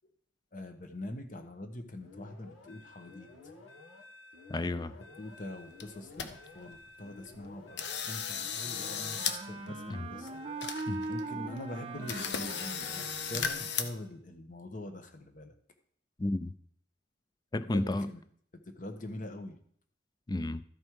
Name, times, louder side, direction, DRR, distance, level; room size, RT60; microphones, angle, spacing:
voice 1, 0.5-3.5 5.2-10.5 11.1-15.5 17.6-18.2 18.8-19.6, left 1 dB, 40° left, 1.1 m, -43 dB
sound 1, 2.0-14.1, left 2 dB, 80° left, 1.7 m, -53 dB
voice 2, 4.5-4.9 9.9-10.1 10.9-11.1 16.2-16.5 17.5-18.1 20.3-20.6, left 2 dB, 20° left, 0.4 m, -32 dB
sound 2, 5.5-5.6 5.8-6.3 6.7-6.8 7.3-7.5 7.8-9.4 9.7-9.8 10.3-10.4 10.6-11.2 11.6-11.7 12.1-13.8, left 7 dB, 60° left, 0.9 m, -35 dB
Wind instrument woodwind instrument, 8.6-14.0, right 3 dB, 30° right, 0.5 m, -41 dB
13.0 x 5.3 x 4.7 m
head